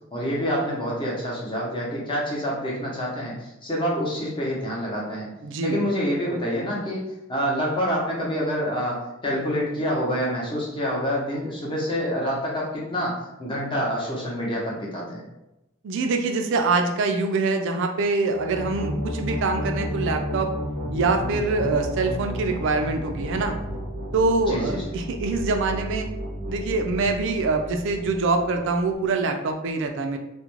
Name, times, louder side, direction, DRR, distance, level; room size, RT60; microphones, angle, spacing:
voice 1, 0.1-5.3 5.6-7.0 7.3-15.2 24.4-24.8, equal, 25° left, -5 dB, 0.7 m, -27 dB
voice 2, 5.4-5.8 15.8-20.5 20.9-23.6 24.1-26.1 26.5-30.2, right 3 dB, 60° right, 5 dB, 0.4 m, -24 dB
sound 1, 18.3-28.9, equal, 70° left, 0.9 m, -32 dB
2.4 x 2.1 x 3.0 m, 0.91 s
head